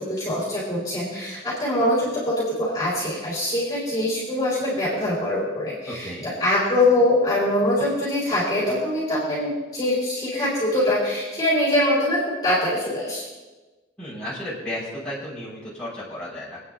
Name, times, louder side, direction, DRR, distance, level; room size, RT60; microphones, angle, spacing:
voice 1, 0.0-13.2, left 1 dB, 20° left, -7 dB, 4.8 m, -23 dB
voice 2, 5.9-6.3 14.0-16.6, left 1 dB, 5° left, -10 dB, 5.4 m, -33 dB
27.0 x 9.6 x 2.8 m, 1.2 s
head